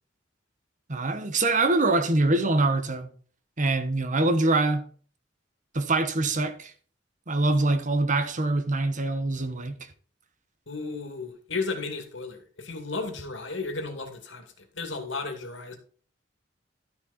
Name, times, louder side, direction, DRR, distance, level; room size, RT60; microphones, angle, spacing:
voice 1, 0.9-3.1 3.6-4.8 5.7-6.7 7.3-9.8, right 2 dB, 40° right, 1.2 m, -24 dB
voice 2, 10.7-15.8, left 3 dB, 75° left, 2.5 m, -34 dB
12.5 x 6.4 x 4.2 m
head